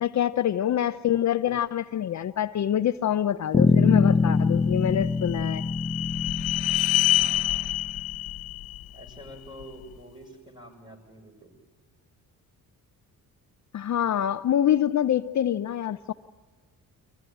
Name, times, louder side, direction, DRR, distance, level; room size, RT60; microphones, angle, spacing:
voice 1, 0.0-5.6 13.7-16.1, left 10 dB, 50° left, 11 dB, 0.7 m, -25 dB
Bass guitar, 3.5-8.0, left 4 dB, 15° left, 1.2 m, -24 dB
sound 1, 4.5-9.7, left 16 dB, 80° left, 0.9 m, -28 dB
voice 2, 7.1-7.7 8.9-11.5, equal, 10° right, 3 dB, 7.0 m, -47 dB
24.0 x 15.5 x 10.0 m, 1.5 s
cardioid pair, 95°, 37 cm